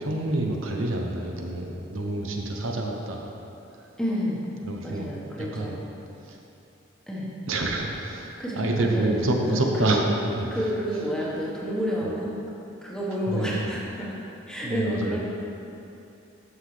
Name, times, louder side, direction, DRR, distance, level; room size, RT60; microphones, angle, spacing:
voice 1, 0.0-3.4 4.6-5.1 5.4-5.8 6.2-6.4 7.5-10.7 13.3-13.7 14.6-15.2, right 2 dB, 75° right, 1 dB, 0.9 m, -27 dB
voice 2, 4.0-4.4 4.8-5.8 7.1-7.3 8.4-9.1 9.4-10.0 10.5-12.4 12.8-14.2 14.5-15.2, equal, 5° left, -6 dB, 1.3 m, -29 dB
13.0 x 5.9 x 3.3 m, 2.8 s
head